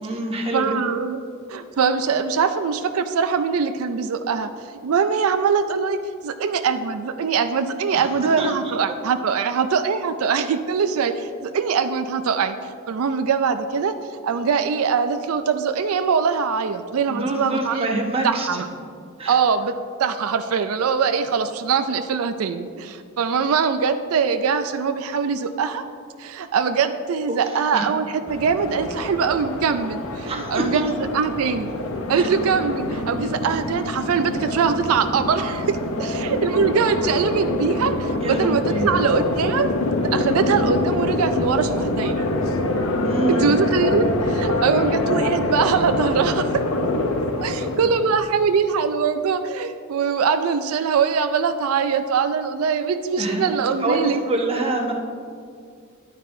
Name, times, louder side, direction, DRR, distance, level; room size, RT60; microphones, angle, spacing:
voice 1, 0.0-0.8 7.9-8.0 8.4-8.7 17.1-18.6 19.2-19.4 27.3-27.4 27.7-27.8 30.3-30.9 32.1-32.3 38.2-39.0 43.0-43.6 53.2-54.9, right 1 dB, 25° right, 1 dB, 1.0 m, -26 dB
voice 2, 0.5-1.2 1.5-6.0 6.2-13.9 14.2-18.7 19.3-19.7 20.0-25.8 26.2-31.7 32.1-39.7 40.0-42.2 43.3-46.6 47.4-54.2, right 6 dB, 75° right, 9 dB, 0.4 m, -22 dB
sound 1, 28.3-48.1, left 2 dB, 70° left, 0.7 m, -25 dB
11.0 x 9.2 x 2.7 m, 2.2 s
head